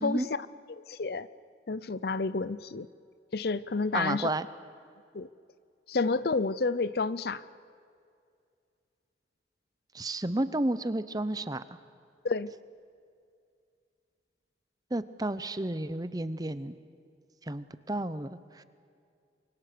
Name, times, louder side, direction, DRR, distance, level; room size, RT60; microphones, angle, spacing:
voice 1, 0.0-1.3 1.7-2.9 3.3-4.3 5.1-5.3 5.9-7.4 12.2-12.5, left 3 dB, 55° left, 17 dB, 0.6 m, -30 dB
voice 2, 3.9-4.5 9.9-11.6 14.9-16.8 17.5-18.6, right 1 dB, 20° right, 14 dB, 0.7 m, -32 dB
28.5 x 24.0 x 6.8 m, 2.3 s
head